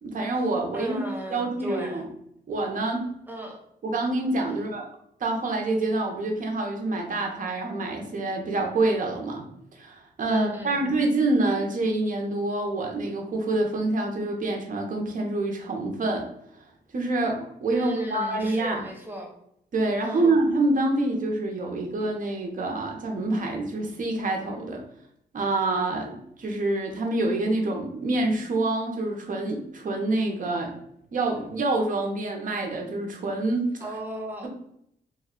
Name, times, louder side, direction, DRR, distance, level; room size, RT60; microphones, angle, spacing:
voice 1, 0.0-1.0 1.3-2.1 2.5-3.1 3.8-4.9 5.2-9.5 9.8-16.3 16.9-18.8 19.7-24.8 25.3-30.7 31.1-33.7, right 2 dB, 50° right, 2 dB, 0.7 m, -26 dB
voice 2, 0.7-2.0 3.3-3.6 4.5-4.6 10.3-10.8 17.7-19.3 20.0-20.3 33.8-34.5, right 1 dB, 10° right, 0 dB, 0.7 m, -35 dB
3.1 x 2.2 x 3.6 m, 0.73 s
wide cardioid pair, 135°, 17 cm